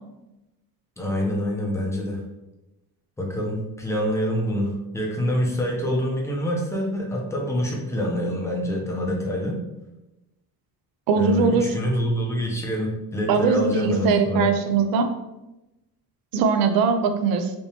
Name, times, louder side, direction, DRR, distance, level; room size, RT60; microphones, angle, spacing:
voice 1, 1.0-2.2 3.2-9.6 11.2-14.5, equal, 5° left, -2 dB, 0.5 m, -26 dB
voice 2, 11.1-11.7 13.3-15.1 16.3-17.5, right 5 dB, 65° right, 7 dB, 0.5 m, -21 dB
3.4 x 2.8 x 2.8 m, 0.97 s
cardioid pair, 150°, 39 cm